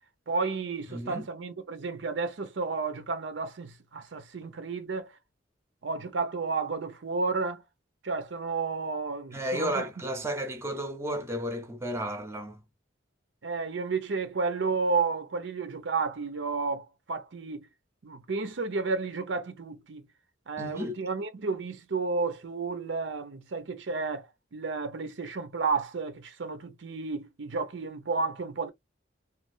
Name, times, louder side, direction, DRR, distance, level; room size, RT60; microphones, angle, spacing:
voice 1, 0.3-5.1 5.8-7.6 8.0-9.8 13.4-17.7 18.0-20.0 20.5-28.7, right 4 dB, 80° right, 0.6 m, -32 dB
voice 2, 0.9-1.3 9.3-12.6 20.6-20.9, equal, 15° right, 0.6 m, -33 dB
3.2 x 2.3 x 2.5 m
head